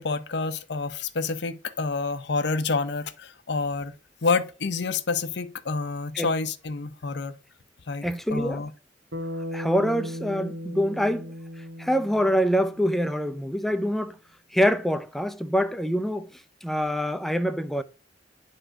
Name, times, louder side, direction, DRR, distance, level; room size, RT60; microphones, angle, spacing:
voice 1, 0.0-3.9 4.2-7.3 7.9-8.7, left 4 dB, 70° left, 0.7 m, -28 dB
voice 2, 8.0-8.6 9.5-11.3 11.8-14.2 14.5-16.3 16.6-17.8, equal, ahead, 0.5 m, -25 dB
Bass guitar, 9.1-13.5, left 1 dB, 85° right, 1.1 m, -37 dB
10.0 x 3.9 x 4.5 m
head